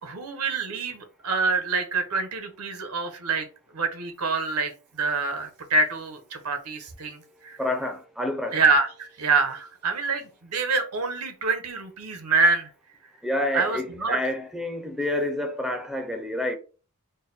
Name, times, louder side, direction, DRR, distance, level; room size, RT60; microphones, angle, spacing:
voice 1, 0.0-3.5 3.7-7.6 8.5-12.7 13.5-14.2, right 4 dB, 90° right, 0.9 m, -26 dB
voice 2, 7.6-8.6 13.2-16.6, left 1 dB, ahead, 0.4 m, -28 dB
3.9 x 2.1 x 4.0 m
head